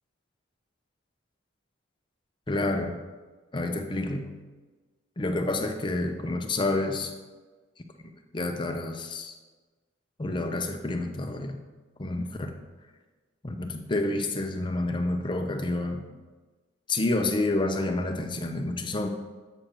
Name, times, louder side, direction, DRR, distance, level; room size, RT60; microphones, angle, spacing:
voice 1, 2.5-3.0 3.5-4.4 5.2-7.1 8.3-9.3 10.2-11.6 12.0-12.6 13.4-16.1 16.9-19.1, left 2 dB, 25° left, 5 dB, 0.5 m, -29 dB
7.8 x 6.3 x 2.9 m, 1.3 s
head